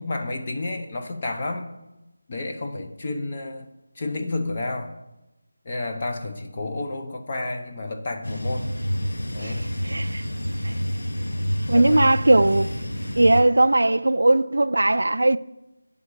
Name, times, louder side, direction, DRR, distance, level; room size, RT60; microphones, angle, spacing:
voice 1, 0.0-1.7 2.3-3.7 4.0-4.9 5.7-8.7 9.3-9.6 11.7-12.1, left 2 dB, 25° left, 0.5 m, -30 dB
sound 1, 8.2-13.4, equal, 90° left, 0.9 m, -28 dB
voice 2, 9.4-10.2 10.6-10.7 11.7-12.7 13.2-15.4, right 2 dB, 85° right, 0.3 m, -19 dB
9.0 x 3.6 x 6.4 m
figure-of-eight pair, 175°, 0 cm